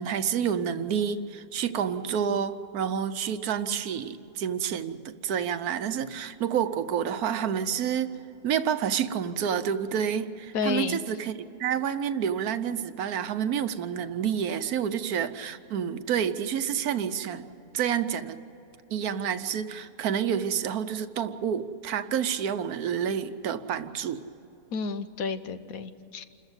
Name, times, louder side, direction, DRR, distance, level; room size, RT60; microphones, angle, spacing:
voice 1, 0.0-8.1 8.4-11.3 11.6-18.4 18.9-24.2, right 8 dB, 75° right, 11 dB, 1.3 m, -29 dB
voice 2, 10.5-11.0 24.7-26.2, left 5 dB, 70° left, 11 dB, 1.3 m, -31 dB
28.0 x 14.0 x 8.1 m, 2.9 s
omnidirectional pair, 1.6 m